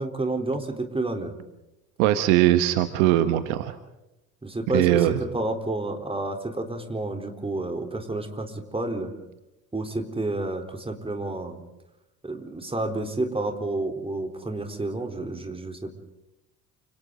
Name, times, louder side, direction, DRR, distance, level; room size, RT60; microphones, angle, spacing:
voice 1, 0.0-1.4 4.4-9.1 9.7-11.6 12.2-16.0, right 2 dB, 10° right, 4 dB, 3.9 m, -30 dB
voice 2, 2.0-3.7 4.7-5.2, right 13 dB, 65° right, 10 dB, 1.4 m, -20 dB
29.0 x 27.0 x 3.9 m, 0.92 s
figure-of-eight pair, 60°, 45 cm